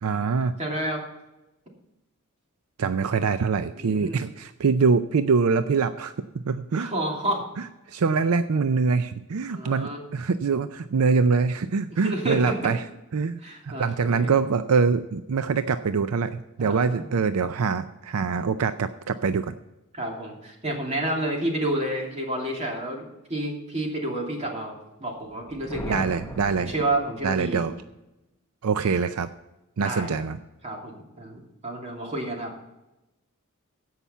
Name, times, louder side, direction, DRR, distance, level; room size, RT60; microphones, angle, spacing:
voice 1, 0.0-0.6 2.8-6.9 7.6-12.8 13.1-19.5 25.9-26.7 27.2-27.7 28.6-29.3 29.8-30.4, right 5 dB, 75° right, 11 dB, 0.5 m, -24 dB
voice 2, 0.6-1.0 3.7-4.2 6.8-7.5 9.5-10.0 12.0-12.7 13.4-14.3 16.6-17.1 19.9-23.0 23.3-26.1 26.6-27.7 29.8-30.2 30.6-32.5, right 1 dB, 30° right, 0 dB, 2.9 m, -30 dB
Thunder, 25.3-27.6, left 1 dB, 15° left, 0.9 m, -38 dB
15.5 x 5.8 x 5.6 m, 0.95 s
head